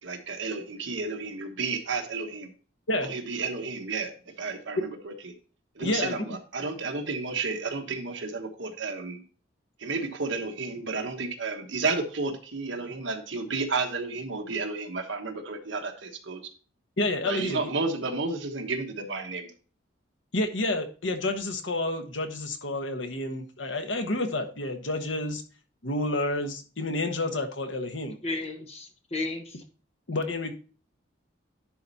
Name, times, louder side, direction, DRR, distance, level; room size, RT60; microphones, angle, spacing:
voice 1, 0.0-2.5 3.0-5.3 5.7-9.2 9.8-16.5 17.2-19.5, right 4 dB, 70° right, 5 dB, 1.2 m, -32 dB
voice 2, 5.8-6.2 17.0-17.7 20.3-25.4 25.8-28.2 30.1-30.5, left 2 dB, 70° left, 6 dB, 1.2 m, -29 dB
voice 3, 28.2-29.6, left 2 dB, 30° left, 4 dB, 1.3 m, -33 dB
10.5 x 4.2 x 4.1 m, 0.38 s
head